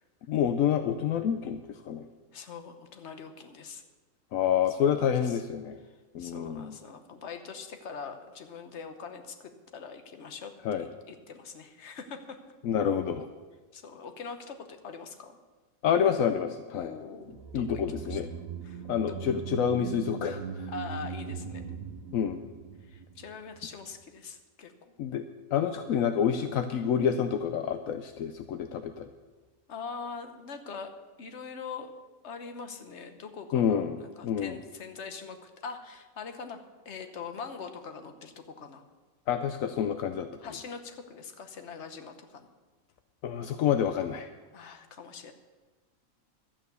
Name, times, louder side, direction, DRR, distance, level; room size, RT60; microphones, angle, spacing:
voice 1, 0.3-2.0 4.3-5.8 6.1-6.8 10.6-10.9 12.6-13.3 15.8-16.9 17.5-18.3 18.9-20.7 22.1-22.4 25.0-25.2 25.5-29.1 33.5-34.6 39.3-40.3 43.2-44.3, left 8 dB, 80° left, 8 dB, 1.0 m, -28 dB
voice 2, 2.3-3.8 4.8-5.4 6.2-12.4 13.7-15.4 16.7-17.3 17.5-17.8 18.1-18.2 18.6-19.2 20.7-21.7 22.8-24.9 29.7-30.9 31.2-31.9 32.2-38.9 40.4-42.5 44.5-45.3, left 5 dB, 55° left, 7 dB, 1.3 m, -43 dB
sound 1, 17.2-23.6 23.9-24.0, right 6 dB, 80° right, 1.3 m, -40 dB
12.0 x 8.8 x 6.8 m, 1.3 s
omnidirectional pair, 1.4 m